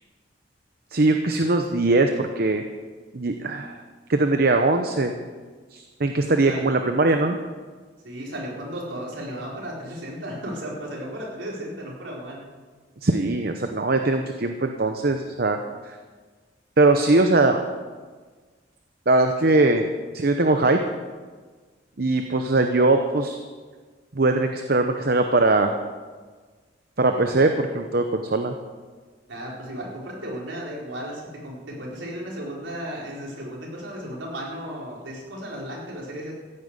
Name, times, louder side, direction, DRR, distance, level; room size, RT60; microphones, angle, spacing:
voice 1, 0.9-2.6 3.1-3.8 4.1-5.1 5.7-7.4 13.0-15.6 16.8-17.6 19.1-19.9 20.1-20.8 22.0-23.4 24.1-25.7 27.0-28.5, right 2 dB, 55° right, 6 dB, 0.9 m, -21 dB
voice 2, 8.0-12.4 29.3-36.3, equal, 85° right, -3 dB, 4.4 m, -34 dB
15.0 x 9.4 x 8.2 m, 1.4 s
head